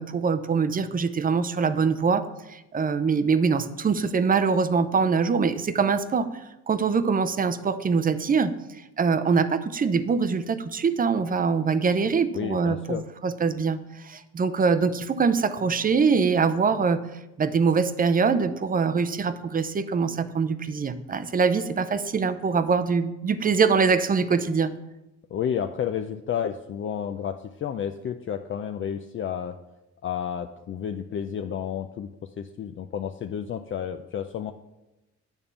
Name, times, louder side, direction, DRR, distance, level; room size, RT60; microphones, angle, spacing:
voice 1, 0.0-8.5 9.0-17.0 17.4-24.7, right 5 dB, 30° right, 12 dB, 0.6 m, -23 dB
voice 2, 12.3-13.0 25.3-29.6 30.0-34.5, left 8 dB, 40° left, 7 dB, 0.4 m, -31 dB
9.1 x 3.6 x 6.9 m, 0.97 s
cardioid pair, 90°, 30 cm